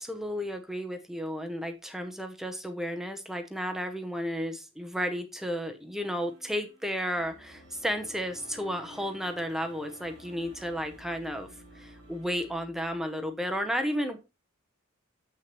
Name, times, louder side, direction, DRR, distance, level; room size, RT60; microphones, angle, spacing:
voice 1, 0.0-11.5 11.7-14.2, equal, ahead, 6 dB, 0.6 m, -33 dB
sound 1, 6.2-12.5, equal, 25° right, 3.1 m, -55 dB
sound 2, 7.1-13.0, equal, 45° left, 2.4 m, -54 dB
7.5 x 5.8 x 3.0 m, 0.27 s
head